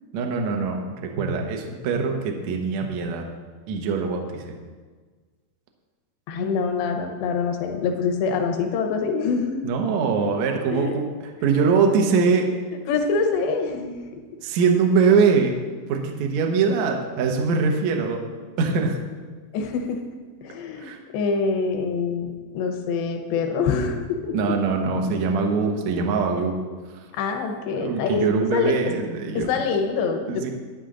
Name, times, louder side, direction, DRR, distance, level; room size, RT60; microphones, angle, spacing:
voice 1, 0.1-3.2 3.7-4.5 9.6-11.1 11.4-12.5 14.4-15.5 15.9-18.2 18.6-19.0 20.8-21.0 24.3-26.6 27.7-29.5 30.3-30.5, right 5 dB, 75° right, 2 dB, 1.7 m, -22 dB
voice 2, 6.3-9.6 10.7-10.9 12.9-14.0 19.5-20.0 20.4-24.5 27.2-28.2 28.5-28.7 29.3-30.4, left 5 dB, 85° left, 4 dB, 3.2 m, -25 dB
11.5 x 10.0 x 3.8 m, 1.4 s
omnidirectional pair, 4.9 m